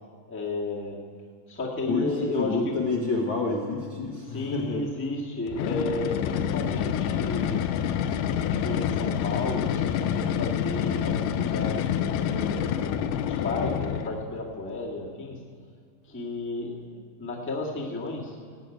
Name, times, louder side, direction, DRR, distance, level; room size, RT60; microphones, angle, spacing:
voice 1, 0.3-1.0 1.5-2.7 4.3-7.6 8.3-12.7 13.2-15.4 16.0-16.9 17.2-18.4, left 2 dB, 5° left, -3 dB, 1.0 m, -33 dB
voice 2, 2.4-4.8, left 3 dB, 55° left, -1 dB, 1.3 m, -28 dB
sound 1, 5.5-14.3, left 9 dB, 80° left, 2.2 m, -27 dB
17.5 x 6.4 x 9.3 m, 2.1 s
omnidirectional pair, 3.9 m